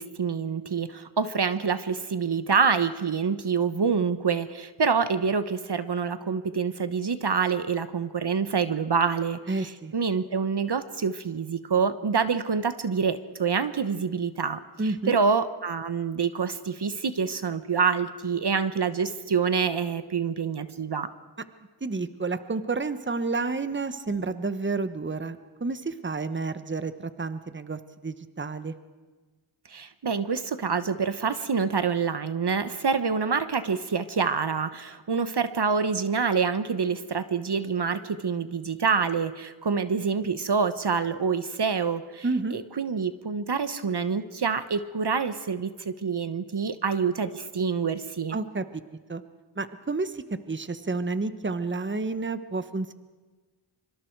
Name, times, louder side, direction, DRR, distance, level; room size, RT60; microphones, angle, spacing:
voice 1, 0.0-21.1 29.7-42.2 42.5-48.4, right 5 dB, 55° right, 12 dB, 1.1 m, -26 dB
voice 2, 9.5-9.9 14.8-15.2 21.8-28.8 42.2-42.6 48.3-48.6 49.1-49.2 49.6-52.9, right 3 dB, 25° right, 12 dB, 1.1 m, -30 dB
25.0 x 24.5 x 4.7 m, 1.3 s
wide cardioid pair, 65°, 49 cm